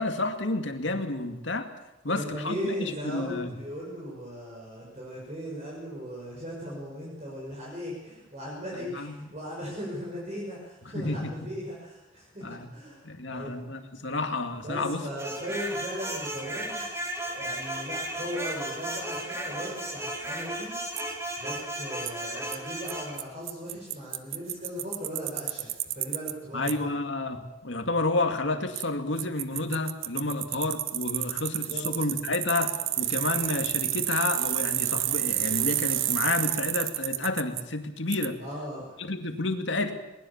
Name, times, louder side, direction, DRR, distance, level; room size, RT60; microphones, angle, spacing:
voice 1, 0.0-1.7 2.0-3.5 8.9-9.1 10.8-11.3 12.4-12.7 13.0-15.0 26.5-38.4 39.0-39.9, left 2 dB, 65° left, 5 dB, 2.4 m, -30 dB
voice 2, 2.1-13.5 14.6-16.8 17.2-20.7 21.4-26.9 31.5-32.1 38.4-39.0, equal, 35° right, -4 dB, 6.3 m, -38 dB
sound 1, 15.2-23.2, right 1 dB, 15° right, 2.5 m, -35 dB
Bicycle, 21.0-21.1 22.1-22.2 22.5-22.6 22.9-23.0 23.2-23.3 23.5-26.3 26.7-26.8 28.8-28.9 29.2-37.6 38.1-38.3, right 14 dB, 80° right, 1.0 m, -29 dB
21.5 x 20.5 x 7.4 m, 0.98 s
head